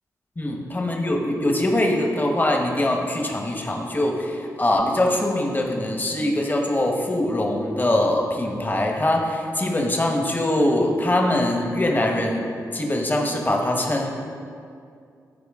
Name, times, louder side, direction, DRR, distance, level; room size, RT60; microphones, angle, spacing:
voice 1, 0.4-12.5 12.7-14.1, left 1 dB, 25° left, 1 dB, 1.2 m, -22 dB
12.5 x 4.5 x 3.6 m, 2.4 s
cardioid pair, 55°, 7 cm